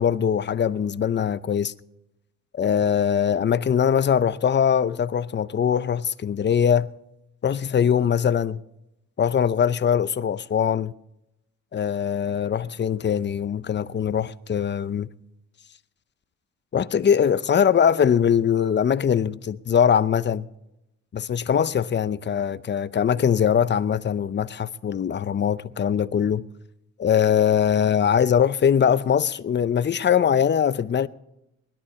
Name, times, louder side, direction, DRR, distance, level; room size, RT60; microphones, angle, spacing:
voice 1, 0.0-1.7 2.5-6.9 7.4-8.6 9.2-10.9 11.7-15.1 16.7-20.5 21.1-26.4 27.0-31.1, left 8 dB, 35° left, 0.7 m, -22 dB
20.5 x 12.0 x 4.3 m
cardioid pair, 90°, 30 cm